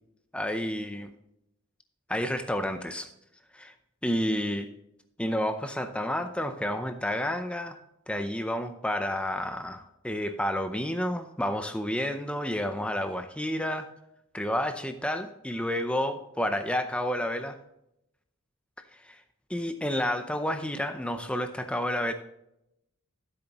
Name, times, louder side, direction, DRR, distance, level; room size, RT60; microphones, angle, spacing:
voice 1, 0.3-1.1 2.1-3.1 3.5-3.7 4.0-4.7 5.2-7.8 8.1-13.9 14.3-17.6 19.0-19.2 19.5-22.1, left 1 dB, 5° left, 7 dB, 0.5 m, -30 dB
13.5 x 8.0 x 2.9 m, 0.83 s
head